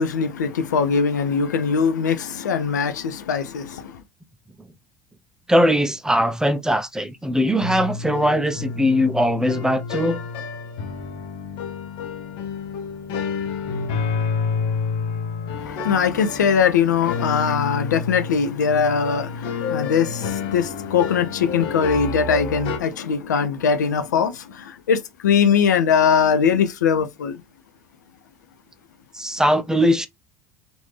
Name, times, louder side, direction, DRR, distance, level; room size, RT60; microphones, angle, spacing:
voice 1, 0.0-3.9 15.6-27.4, left 6 dB, 90° left, 0.5 m, -21 dB
voice 2, 5.5-10.2 29.1-30.1, equal, 5° right, 0.5 m, -20 dB
sound 1, 7.6-22.8, left 5 dB, 65° left, 0.9 m, -29 dB
3.2 x 2.6 x 3.1 m
hypercardioid pair, 70°, 9 cm